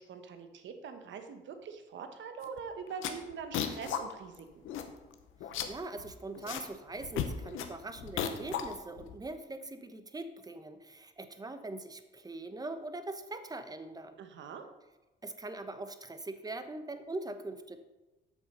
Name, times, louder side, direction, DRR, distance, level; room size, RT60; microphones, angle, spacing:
voice 1, 0.0-4.6 14.2-14.7, right 6 dB, 70° right, 7 dB, 1.2 m, -43 dB
sound 1, 2.4-2.6 2.9-4.0 4.3-4.4 4.7-5.1 5.4-6.7 6.9-9.2, left 9 dB, 85° left, 0.9 m, -36 dB
voice 2, 5.7-14.2 15.2-17.8, right 2 dB, 20° right, 9 dB, 0.9 m, -42 dB
8.1 x 6.8 x 5.4 m, 1.1 s
cardioid pair, 90°, 20 cm